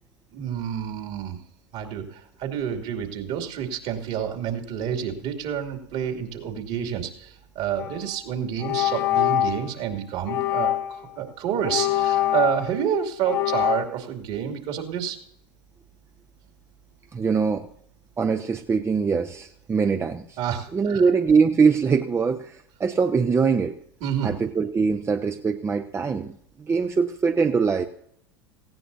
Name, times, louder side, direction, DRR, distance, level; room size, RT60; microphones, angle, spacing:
voice 1, 0.3-1.4 1.7-15.2 20.4-21.1 24.0-24.4, right 9 dB, 55° right, 3 dB, 2.7 m, -29 dB
sound 1, 7.8-8.0 8.6-9.7 10.3-11.0 11.6-12.9 13.3-13.8, left 13 dB, 70° left, 1.2 m, -24 dB
voice 2, 17.1-17.7 18.2-20.4 20.7-23.8 24.2-27.9, right 5 dB, 20° right, 7 dB, 0.7 m, -22 dB
18.5 x 16.0 x 2.7 m, 0.70 s
hypercardioid pair, 85°, 13 cm